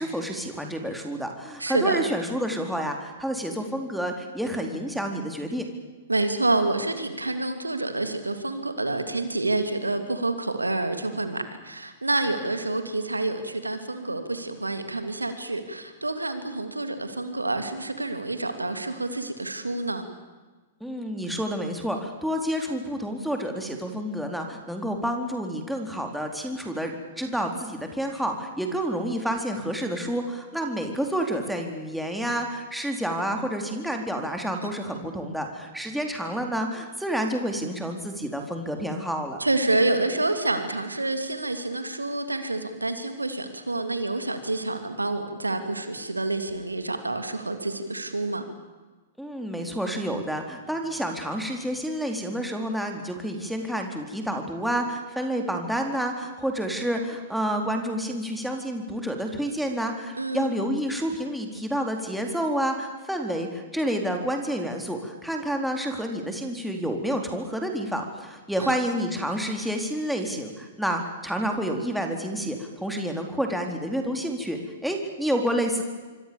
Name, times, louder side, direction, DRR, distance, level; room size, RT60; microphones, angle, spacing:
voice 1, 0.0-5.7 20.8-39.4 49.2-75.8, equal, ahead, 2 dB, 4.1 m, -29 dB
voice 2, 1.6-2.0 6.1-20.1 34.6-34.7 39.4-48.4 60.2-60.5 68.6-68.7, right 2 dB, 90° right, 8 dB, 2.8 m, -28 dB
26.5 x 25.5 x 7.2 m, 1.3 s
figure-of-eight pair, 110°, 0 cm